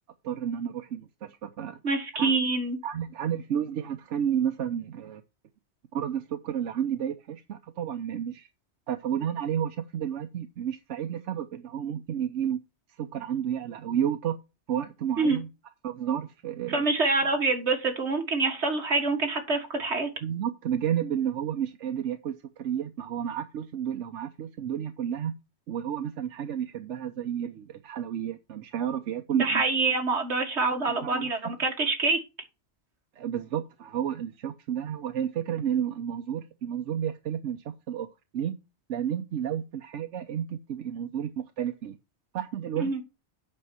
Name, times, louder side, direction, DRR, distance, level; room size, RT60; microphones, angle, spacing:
voice 1, 0.2-1.8 2.1-2.3 2.8-5.2 5.9-8.5 8.9-12.6 13.0-14.4 14.7-15.5 15.8-16.8 20.2-25.3 25.7-29.6 30.9-31.3 33.2-38.1 38.3-38.5 38.9-42.0 42.3-43.0, right 9 dB, 90° right, 1.1 m, -31 dB
voice 2, 1.8-2.8 15.2-15.4 16.7-20.1 29.3-32.2 42.8-43.0, right 3 dB, 70° right, 2.2 m, -26 dB
8.8 x 5.5 x 6.2 m
omnidirectional pair, 1.2 m